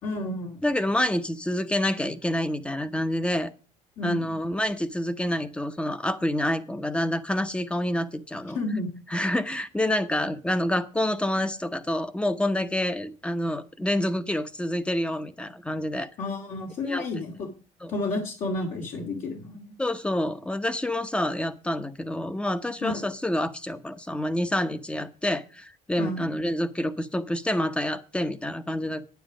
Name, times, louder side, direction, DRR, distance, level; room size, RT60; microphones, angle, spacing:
voice 1, 0.0-0.6 4.0-4.3 8.5-8.9 16.2-17.5 17.9-19.7 22.8-23.1 26.0-26.3, left 2 dB, 60° left, 0 dB, 2.5 m, -31 dB
voice 2, 0.6-3.5 4.0-8.6 9.1-16.1 16.9-17.0 17.8-17.9 19.8-29.0, left 1 dB, 10° left, 12 dB, 0.9 m, -27 dB
9.5 x 9.4 x 5.0 m, 0.36 s
cardioid pair, 130°, 14 cm